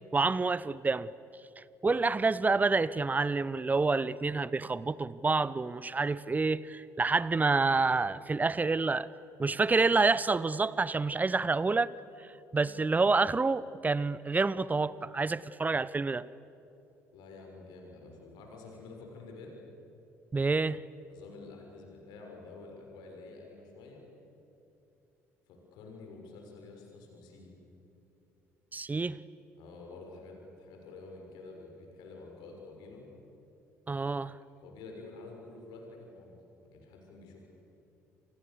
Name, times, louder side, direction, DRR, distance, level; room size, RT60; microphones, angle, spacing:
voice 1, 0.1-1.1 1.6-9.1 9.4-11.9 12.5-16.2 20.3-20.8 28.7-29.2 33.9-34.4, right 3 dB, 20° right, 19 dB, 0.9 m, -28 dB
voice 2, 17.1-19.5 21.1-24.0 25.5-27.5 29.6-33.1 34.6-36.4 36.7-37.5, left 3 dB, 60° left, 1 dB, 6.5 m, -49 dB
29.5 x 28.5 x 7.0 m, 2.9 s
figure-of-eight pair, 50°, 8 cm